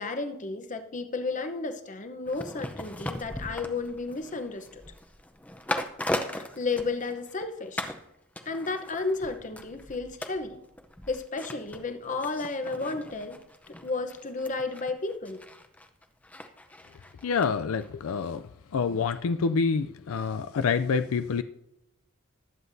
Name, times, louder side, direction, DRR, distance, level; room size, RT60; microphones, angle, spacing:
voice 1, 0.0-4.8 6.3-7.9 8.5-10.6 11.1-13.4 13.7-15.4, left 3 dB, 35° left, 8 dB, 0.8 m, -33 dB
sound 1, 2.3-7.4 7.8-8.0 8.4-17.5 17.8-17.9, left 1 dB, 5° left, 0.6 m, -38 dB
voice 2, 17.2-21.4, left 5 dB, 75° left, 10 dB, 0.4 m, -27 dB
20.0 x 7.8 x 2.7 m, 0.88 s
head